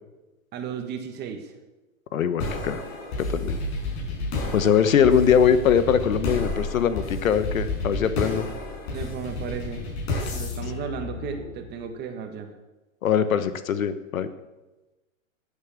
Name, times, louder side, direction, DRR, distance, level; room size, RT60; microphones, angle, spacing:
voice 1, 0.5-1.5 8.9-9.8 10.3-12.5, right 7 dB, 25° right, 6 dB, 1.6 m, -34 dB
voice 2, 2.1-2.8 3.2-3.6 4.5-8.5 13.0-14.3, left 8 dB, 80° left, 12 dB, 1.3 m, -22 dB
sound 1, 2.4-11.8, left 2 dB, 50° left, 6.0 m, -31 dB
12.0 x 9.0 x 7.3 m, 1.1 s
hypercardioid pair, 140°, 40 cm